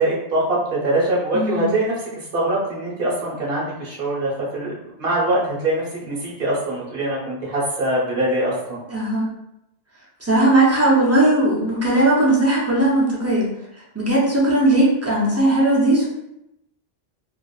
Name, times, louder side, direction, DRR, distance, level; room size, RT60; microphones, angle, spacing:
voice 1, 0.0-4.7 5.0-8.8, right 1 dB, 65° right, -5 dB, 1.1 m, -23 dB
voice 2, 1.3-1.7 8.9-9.3 10.2-13.5 13.9-16.1, right 1 dB, 20° right, -5 dB, 0.5 m, -18 dB
2.9 x 2.5 x 2.3 m, 0.83 s
omnidirectional pair, 1.1 m